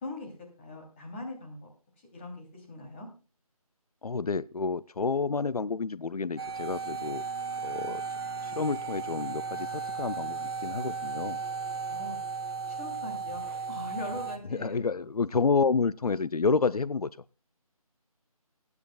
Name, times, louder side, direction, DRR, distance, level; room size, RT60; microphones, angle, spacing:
voice 1, 0.0-0.3 0.6-1.7 2.1-3.1 11.9-12.2 12.7-15.0, left 2 dB, 20° left, 0 dB, 3.0 m, -41 dB
voice 2, 4.0-7.2 7.6-8.0 8.4-11.4 14.5-17.1, left 4 dB, 80° left, 18 dB, 0.5 m, -29 dB
sound 1, 6.4-14.4, right 5 dB, 40° right, 1.8 m, -35 dB
26.5 x 9.5 x 2.3 m, 0.32 s
figure-of-eight pair, 160°, 19 cm